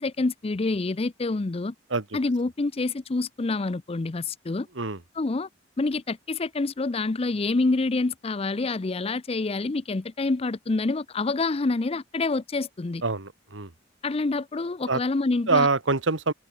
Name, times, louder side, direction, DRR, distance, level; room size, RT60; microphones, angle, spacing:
voice 1, 0.0-1.7 2.1-4.7 5.2-5.5 5.8-13.0 14.0-15.7, left 3 dB, 30° left, 0.5 m, -27 dB
voice 2, 13.0-13.7 14.9-15.0 15.5-16.3, right 3 dB, 75° right, 1.7 m, -24 dB
head